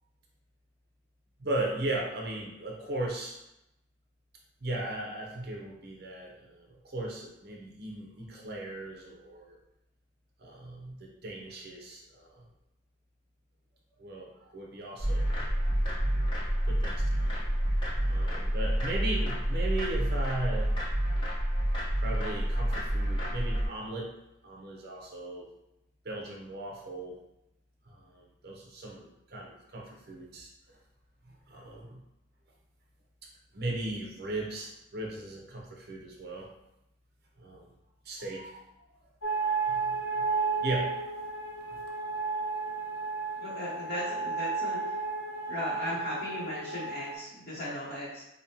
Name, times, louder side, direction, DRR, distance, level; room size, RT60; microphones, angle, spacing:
voice 1, 1.4-3.4 4.6-9.6 10.4-12.5 14.0-15.6 16.6-17.3 18.0-20.7 22.0-24.1 24.4-25.5 26.0-27.2 27.9-30.8 31.5-32.0 33.5-36.5 37.4-37.7 38.0-38.6 39.4-41.0, right 1 dB, 55° right, -1 dB, 0.7 m, -37 dB
sound 1, 15.0-23.7, equal, 25° left, 0.9 m, -28 dB
sound 2, 39.2-47.2, right 4 dB, 85° left, 1.2 m, -33 dB
voice 2, 43.4-45.0 45.5-48.2, left 1 dB, 50° left, -10 dB, 0.9 m, -37 dB
5.0 x 2.2 x 2.8 m, 0.88 s
head